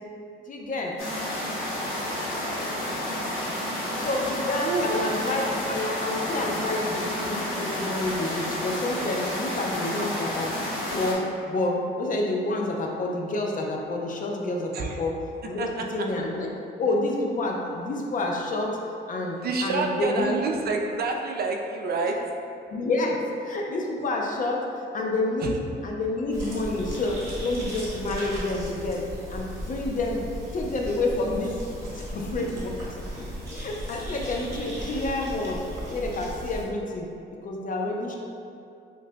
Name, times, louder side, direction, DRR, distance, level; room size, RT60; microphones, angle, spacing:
voice 1, 0.5-0.9 4.0-10.5 10.9-15.2 15.4-16.5 16.8-18.8 19.1-20.4 22.7-24.6 24.9-25.5 25.8-29.0 29.3-31.6 32.0-32.7 33.5-35.6 35.9-37.1 37.4-38.2, left 2 dB, 40° left, 0 dB, 0.5 m, -28 dB
sound 1, 1.0-11.1, left 1 dB, 80° left, 1.0 m, -30 dB
voice 2, 15.6-16.1 19.4-22.2 25.4-25.6, right 4 dB, 50° right, 2 dB, 0.4 m, -28 dB
sound 2, 26.3-36.6, equal, 15° right, 1.1 m, -36 dB
3.1 x 2.2 x 3.8 m, 2.5 s
cardioid pair, 90°, 20 cm